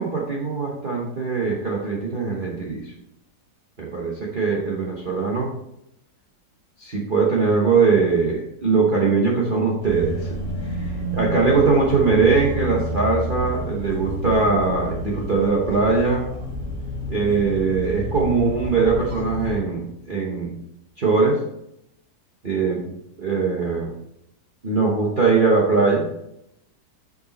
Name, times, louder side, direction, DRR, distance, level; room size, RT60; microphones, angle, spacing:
voice 1, 0.0-2.9 3.8-5.5 6.8-16.2 17.1-20.5 21.0-21.4 22.4-23.9 24.6-26.1, right 4 dB, 35° right, -3 dB, 1.0 m, -21 dB
sound 1, 9.8-19.6, equal, 15° right, 2.9 m, -30 dB
6.8 x 5.4 x 4.1 m, 0.80 s
omnidirectional pair, 1.8 m